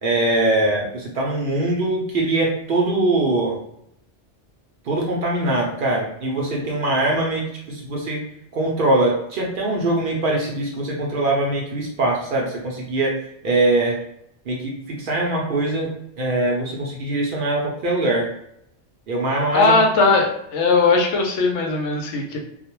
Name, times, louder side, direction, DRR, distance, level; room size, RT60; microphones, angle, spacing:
voice 1, 0.0-3.6 4.8-8.2 8.5-13.2 13.4-14.0 14.5-15.9 16.2-18.3 19.1-19.8, right 2 dB, 60° right, -2 dB, 0.6 m, -22 dB
voice 2, 19.5-22.4, left 3 dB, 80° left, 1 dB, 0.9 m, -18 dB
2.3 x 2.1 x 2.9 m, 0.76 s
omnidirectional pair, 1.2 m